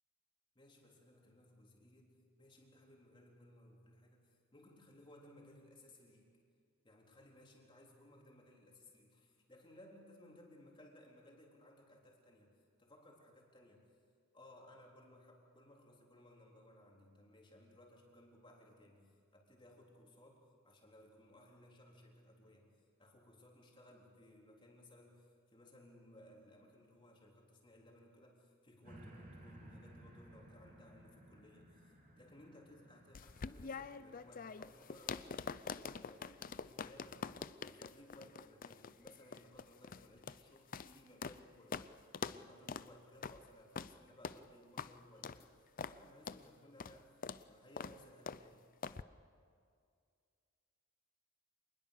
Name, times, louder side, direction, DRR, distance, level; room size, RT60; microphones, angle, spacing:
voice 1, 0.5-6.3 6.8-14.0 14.3-48.7, left 1 dB, 25° left, -1 dB, 3.8 m, -61 dB
sound 1, 28.8-36.2 36.8-36.9, right 1 dB, 40° right, 3.4 m, -59 dB
sound 2, 33.1-41.4 41.7-41.9 42.1-42.4 42.7-42.9 43.2-43.4 43.8-43.9 44.2-44.4 44.8-44.9 45.2-45.4 45.8-46.0 46.3-46.4 46.8-47.0 47.2-47.4 47.8-48.0 48.3-48.4 48.8-49.0, left 5 dB, 40° left, 0.5 m, -44 dB
26.0 x 20.5 x 6.7 m, 2.3 s
head